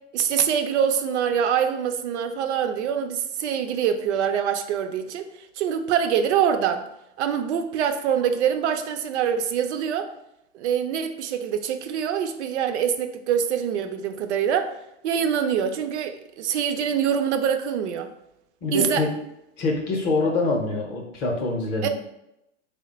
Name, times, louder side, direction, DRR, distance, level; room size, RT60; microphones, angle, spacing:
voice 1, 0.1-5.3 5.6-6.8 7.2-10.1 10.5-14.7 15.0-18.1 18.7-19.1 21.8-21.9, right 8 dB, 70° right, 7 dB, 0.5 m, -24 dB
voice 2, 18.6-19.1 19.6-21.9, left 3 dB, 30° left, 0 dB, 0.6 m, -25 dB
3.1 x 2.1 x 3.9 m, 0.85 s
supercardioid pair, 145°, 35 cm